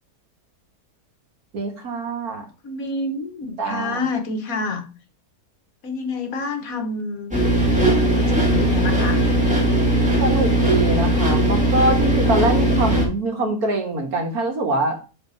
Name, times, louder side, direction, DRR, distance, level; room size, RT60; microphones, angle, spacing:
voice 1, 1.5-2.5 3.6-4.0 10.2-15.0, right 2 dB, 65° right, 3 dB, 2.0 m, -23 dB
voice 2, 2.6-4.9 5.8-7.4 7.9-9.2, left 3 dB, 60° left, 7 dB, 1.5 m, -28 dB
sound 1, 7.3-13.1, right 1 dB, 5° right, 2.1 m, -19 dB
6.7 x 4.0 x 5.5 m, 0.33 s
omnidirectional pair, 1.7 m